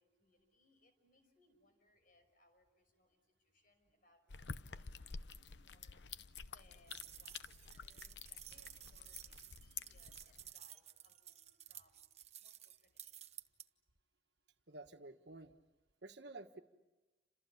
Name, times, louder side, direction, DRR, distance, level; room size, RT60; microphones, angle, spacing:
voice 1, 0.0-13.6, left 2 dB, 50° left, 6 dB, 5.8 m, -73 dB
sound 1, 4.3-10.5, left 5 dB, 75° left, 0.8 m, -50 dB
sound 2, 6.9-13.7, right 11 dB, 40° right, 0.9 m, -55 dB
voice 2, 14.7-15.6 16.0-16.6, right 2 dB, 70° right, 7 dB, 1.5 m, -52 dB
29.5 x 27.0 x 7.2 m, 1.1 s
head